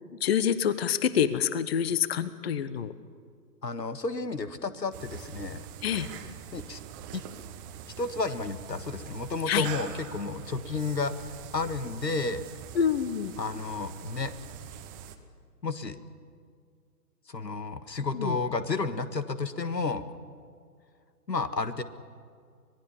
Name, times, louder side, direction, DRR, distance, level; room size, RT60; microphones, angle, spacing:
voice 1, 0.2-2.9 5.8-6.1 9.5-9.7 12.7-13.3 18.1-18.4, left 8 dB, 40° left, 15 dB, 1.0 m, -27 dB
voice 2, 3.6-5.7 6.5-6.8 7.1-7.2 8.0-12.4 13.4-14.3 15.6-16.0 17.3-20.1 21.3-21.8, left 3 dB, 85° left, 12 dB, 1.7 m, -32 dB
sound 1, 4.9-15.2, right 9 dB, 15° right, 0.7 m, -44 dB
26.0 x 19.0 x 7.2 m, 2.1 s
figure-of-eight pair, 135°, 48 cm